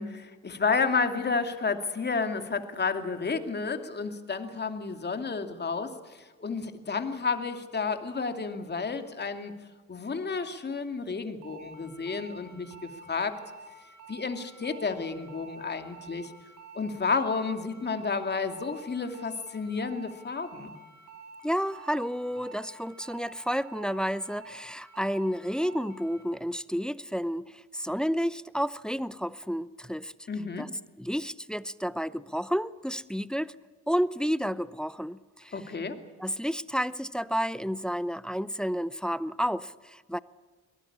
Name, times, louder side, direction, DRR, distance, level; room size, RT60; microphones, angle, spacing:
voice 1, 0.0-9.5 9.9-13.4 14.1-16.3 16.7-20.7 30.3-30.6 35.5-36.0, left 4 dB, 35° left, 7 dB, 2.5 m, -31 dB
sound 1, 11.4-26.2, right 3 dB, 85° right, 4.2 m, -49 dB
voice 2, 21.4-30.1 30.6-30.7 31.0-33.5 33.9-35.6 36.2-40.2, equal, 5° left, 16 dB, 0.7 m, -31 dB
23.0 x 18.5 x 8.7 m, 1.3 s
cardioid pair, 90°, 30 cm